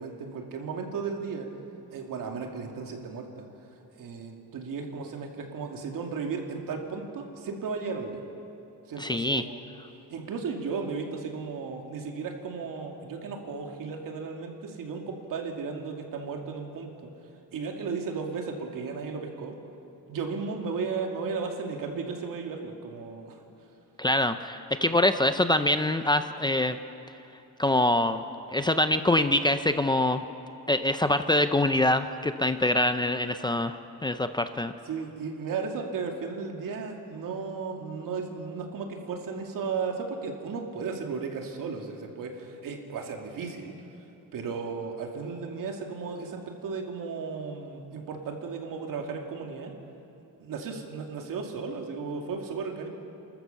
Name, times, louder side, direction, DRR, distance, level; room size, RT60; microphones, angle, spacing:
voice 1, 0.0-1.5 1.9-3.5 3.9-8.2 8.9-9.6 10.1-16.9 17.5-19.5 20.1-23.4 34.9-43.7 44.3-49.7 50.4-52.9, right 5 dB, 70° right, 2 dB, 2.5 m, -35 dB
voice 2, 9.0-9.4 24.0-26.8 27.6-28.2 28.5-30.2 30.7-34.7, left 1 dB, 15° left, 9 dB, 0.5 m, -24 dB
28.5 x 13.5 x 7.0 m, 2.9 s
cardioid pair, 150°, 34 cm